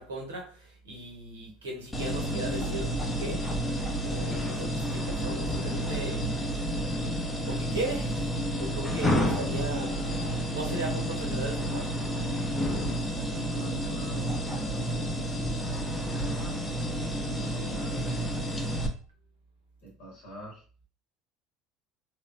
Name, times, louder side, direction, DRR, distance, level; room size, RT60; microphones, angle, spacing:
voice 1, 0.0-3.5 4.0-6.2 7.4-8.2 8.6-12.0, right 2 dB, 75° right, 0 dB, 0.8 m, -37 dB
sound 1, 1.9-18.9, equal, 15° left, 0.6 m, -30 dB
voice 2, 13.1-15.0 15.7-18.4 19.8-20.6, right 4 dB, 65° left, -3 dB, 1.1 m, -42 dB
3.0 x 2.0 x 2.4 m, 0.40 s
figure-of-eight pair, 65°, 0 cm